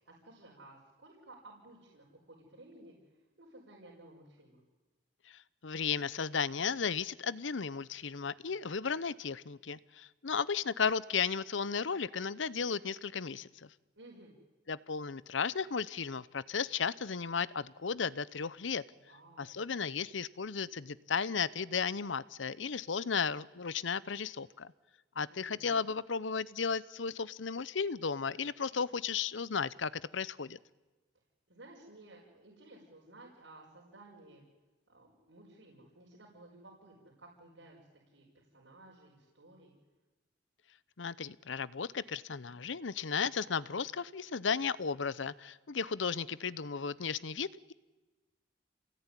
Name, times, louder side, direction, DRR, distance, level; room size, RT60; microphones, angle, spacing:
voice 1, 0.0-4.6 13.9-14.3 18.9-19.6 25.3-25.8 31.5-34.5 34.9-37.8 38.1-39.7, right 2 dB, 85° right, -4 dB, 5.5 m, -56 dB
voice 2, 5.6-13.5 14.7-18.8 19.4-24.7 25.2-30.6 41.0-47.7, left 6 dB, 80° left, 19 dB, 0.8 m, -34 dB
28.5 x 19.0 x 9.9 m, 1.2 s
head